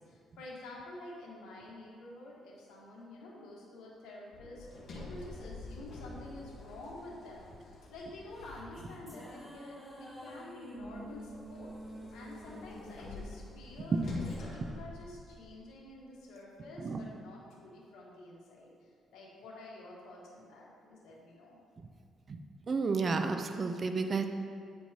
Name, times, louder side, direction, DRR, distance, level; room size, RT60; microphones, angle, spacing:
voice 1, 0.0-21.6, left 2 dB, 85° left, -3 dB, 1.3 m, -49 dB
Sliding door, 4.3-9.2 10.8-15.7, left 2 dB, 55° left, 1.1 m, -46 dB
sound 1, 8.3-14.7, equal, 5° left, 1.0 m, -49 dB
voice 2, 22.7-24.3, right 4 dB, 40° right, 6 dB, 0.5 m, -31 dB
8.5 x 4.5 x 2.8 m, 2.2 s
cardioid pair, 90°, 0 cm